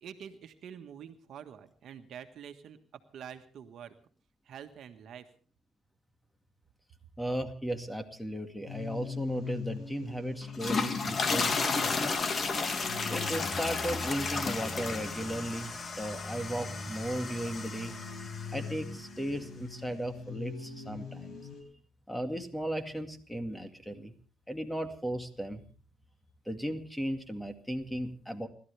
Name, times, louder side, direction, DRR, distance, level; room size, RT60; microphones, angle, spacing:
voice 1, 0.0-3.9 4.4-5.3, right 8 dB, 70° right, 6 dB, 1.5 m, -47 dB
voice 2, 7.2-12.4 13.1-17.9 18.5-21.4 22.1-24.1 24.5-25.6 26.5-28.5, right 1 dB, 5° left, 7 dB, 2.2 m, -36 dB
sound 1, 8.7-21.6, left 4 dB, 60° left, 5.0 m, -42 dB
sound 2, 10.4-18.8, left 4 dB, 40° left, 1.9 m, -33 dB
29.5 x 13.0 x 3.4 m, 0.41 s
cardioid pair, 90°, 0 cm